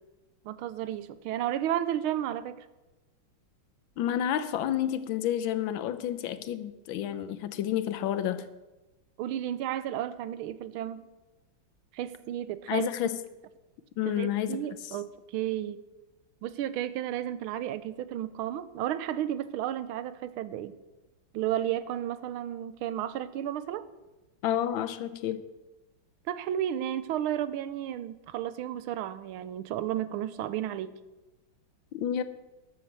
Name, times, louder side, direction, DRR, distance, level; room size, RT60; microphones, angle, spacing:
voice 1, 0.4-2.7 9.2-11.0 11.9-12.9 14.1-15.8 16.4-20.7 21.3-23.9 26.3-31.0, right 11 dB, 85° right, 14 dB, 1.5 m, -33 dB
voice 2, 4.0-8.5 12.7-13.2 14.0-14.6 24.4-25.4 31.9-32.2, left 10 dB, 75° left, 12 dB, 1.5 m, -30 dB
12.5 x 7.6 x 6.7 m, 1.1 s
omnidirectional pair, 2.3 m